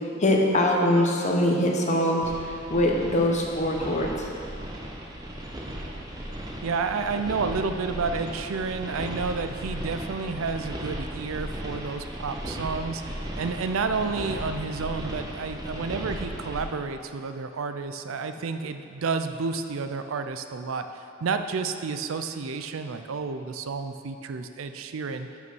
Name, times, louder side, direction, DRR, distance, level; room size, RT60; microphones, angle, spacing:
voice 1, 0.2-2.3 2.7-4.1, left 1 dB, 35° left, 0 dB, 0.9 m, -22 dB
sound 1, 2.2-16.6, right 1 dB, 20° right, 0.9 m, -36 dB
voice 2, 6.6-25.3, right 4 dB, 90° right, 8 dB, 0.5 m, -30 dB
6.8 x 5.8 x 6.1 m, 2.5 s
head